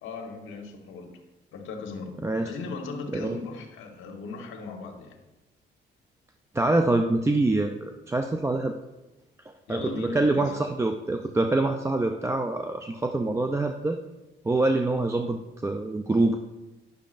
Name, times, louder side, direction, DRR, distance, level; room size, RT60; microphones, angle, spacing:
voice 1, 0.0-1.1 1.5-5.2 9.7-10.5, left 4 dB, 80° left, 3 dB, 1.3 m, -38 dB
voice 2, 6.5-8.7 9.7-14.0 14.4-16.4, right 2 dB, 15° right, 5 dB, 0.4 m, -25 dB
10.5 x 6.5 x 2.5 m, 1.0 s
cardioid pair, 90°, 20 cm